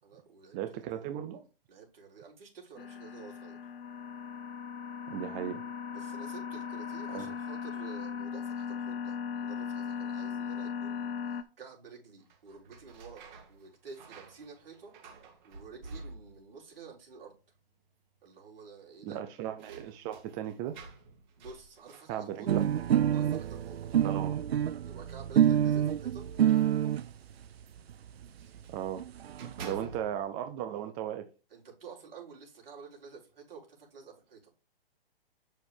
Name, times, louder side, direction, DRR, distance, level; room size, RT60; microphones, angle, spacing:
voice 1, 0.0-1.0 1.7-3.6 5.9-13.2 13.5-14.9 15.4-17.3 18.2-19.2 21.4-22.5 23.1-23.8 24.8-26.2 29.4-29.9 31.5-34.5, right 5 dB, 70° right, 4.2 m, -50 dB
voice 2, 0.5-1.5 5.1-5.6 7.1-7.3 19.0-20.8 22.1-22.7 24.0-24.4 28.7-29.0 29.6-31.2, right 11 dB, 20° right, 0.4 m, -36 dB
sound 1, 2.8-11.4, left 7 dB, 70° left, 1.1 m, -38 dB
sound 2, 12.2-16.6 16.9-17.5 17.8-17.9 19.0-24.4 25.3-28.8 29.2-30.4, right 3 dB, 50° right, 2.4 m, -51 dB
sound 3, 22.5-27.1 27.9-28.0 28.2-28.3 28.6-28.7 28.9-29.5, right 10 dB, 90° right, 0.5 m, -27 dB
8.6 x 6.4 x 3.3 m
hypercardioid pair, 135°, 30 cm